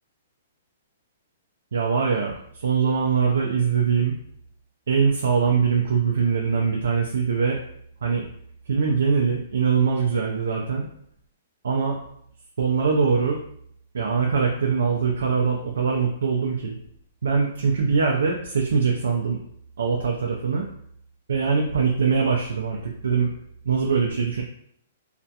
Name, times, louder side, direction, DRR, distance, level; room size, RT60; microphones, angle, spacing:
voice 1, 1.7-4.1 4.9-7.6 8.0-8.3 8.7-10.9 11.6-12.0 12.6-13.4 13.9-16.7 17.2-19.4 19.8-20.7 21.3-23.3 23.6-24.4, right 5 dB, 90° right, 0 dB, 0.4 m, -22 dB
2.3 x 2.1 x 2.7 m, 0.68 s
hypercardioid pair, 165°, 0 cm